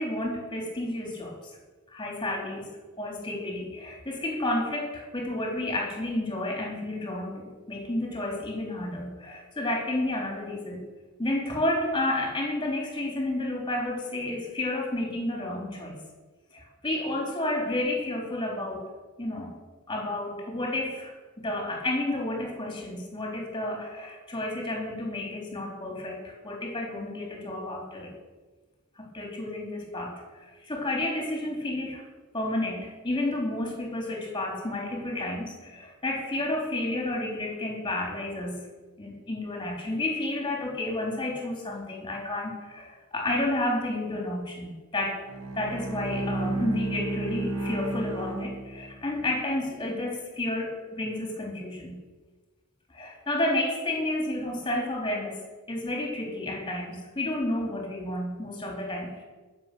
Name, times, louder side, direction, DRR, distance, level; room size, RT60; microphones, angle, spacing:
voice 1, 0.0-1.4 1.9-10.8 11.2-16.0 16.5-18.9 19.2-19.5 19.9-28.1 29.0-32.0 32.3-38.7 39.0-45.2 45.6-52.0 52.9-55.4 55.7-59.2, left 1 dB, 20° left, 0 dB, 3.7 m, -31 dB
Bowed string instrument, 45.2-49.3, right 2 dB, 70° right, 2.1 m, -32 dB
20.5 x 7.9 x 6.9 m, 1.3 s
head